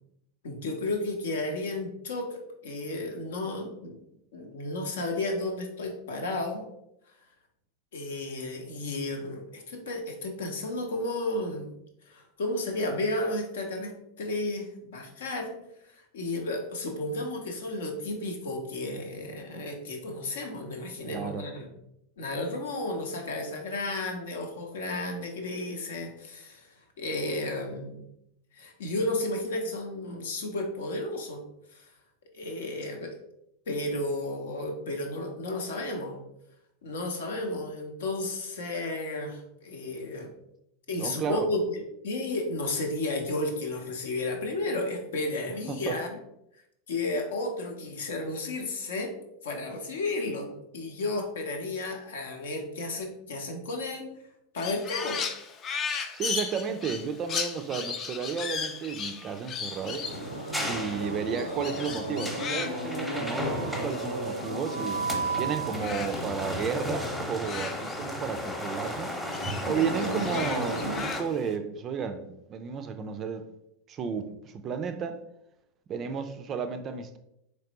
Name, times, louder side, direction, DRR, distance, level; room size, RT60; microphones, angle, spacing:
voice 1, 0.4-4.0 4.3-6.7 7.9-11.7 12.0-15.6 15.8-21.7 22.2-28.1 28.5-31.4 31.7-31.9 32.3-33.2 33.7-36.2 36.8-40.3 40.9-46.2 46.9-49.1 49.4-54.1 54.5-55.2, left 2 dB, 65° left, 3 dB, 0.7 m, -33 dB
voice 2, 21.1-21.4 41.0-41.5 45.7-46.0 56.1-60.1 60.7-65.0 65.4-69.2 69.6-73.4 73.9-75.2 75.9-77.2, right 6 dB, 30° right, 8 dB, 0.4 m, -33 dB
Crow, 54.6-65.3 65.5-68.5 68.8-71.5, left 6 dB, 30° left, 0.4 m, -37 dB
sound 1, 59.7-71.2, left 1 dB, 5° left, 0.8 m, -36 dB
sound 2, 60.0-71.0, right 2 dB, 90° right, 0.5 m, -35 dB
4.0 x 3.2 x 2.9 m, 0.80 s
figure-of-eight pair, 85°, 0 cm